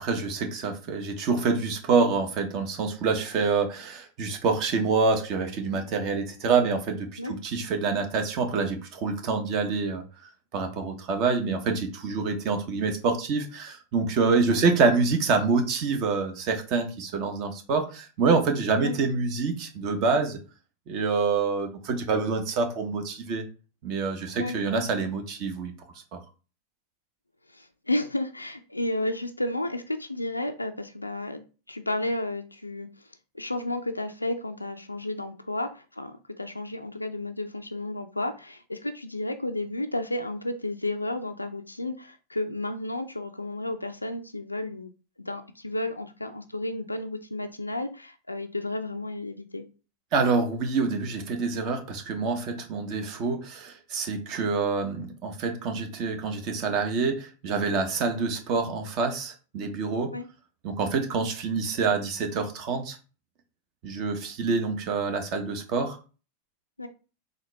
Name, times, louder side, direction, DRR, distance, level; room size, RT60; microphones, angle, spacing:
voice 1, 0.0-10.0 10.5-20.4 20.9-23.4 23.8-25.7 26.1-26.2 50.1-60.1 60.6-63.0 63.8-66.0, right 4 dB, 40° right, 5 dB, 0.8 m, -26 dB
voice 2, 27.5-33.1 33.3-44.9 45.2-49.6 60.1-60.3 66.8-66.9, left 1 dB, 85° left, 7 dB, 0.3 m, -32 dB
4.0 x 2.5 x 3.1 m, 0.35 s
figure-of-eight pair, 90°, 0 cm